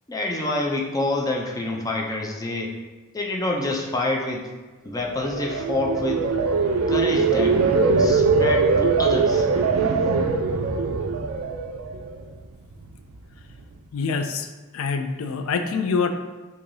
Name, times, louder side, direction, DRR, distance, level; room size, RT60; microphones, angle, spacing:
voice 1, 0.1-2.8 3.1-4.5 4.8-6.3 6.9-7.6 8.0-9.5, left 2 dB, 15° left, 0 dB, 0.4 m, -27 dB
sound 1, 5.1-12.3 12.7-13.1, right 4 dB, 75° right, 0.4 m, -21 dB
voice 2, 13.9-14.5 14.7-16.1, left 5 dB, 75° left, 7 dB, 0.4 m, -25 dB
4.6 x 2.7 x 2.6 m, 1.2 s
head